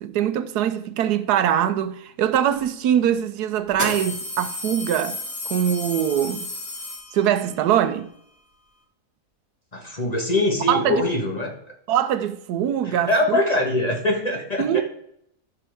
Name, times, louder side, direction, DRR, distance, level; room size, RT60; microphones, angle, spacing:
voice 1, 0.0-5.2 5.4-6.5 7.1-8.1 10.7-11.0 11.9-13.4 14.6-14.8, right 10 dB, 85° right, 1.2 m, -22 dB
sound 1, 2.6-2.7 3.7-7.5, left 2 dB, 10° left, 3.8 m, -32 dB
voice 2, 9.7-11.5 12.8-14.8, left 1 dB, 25° left, 1.3 m, -23 dB
14.5 x 5.9 x 3.5 m
omnidirectional pair, 1.7 m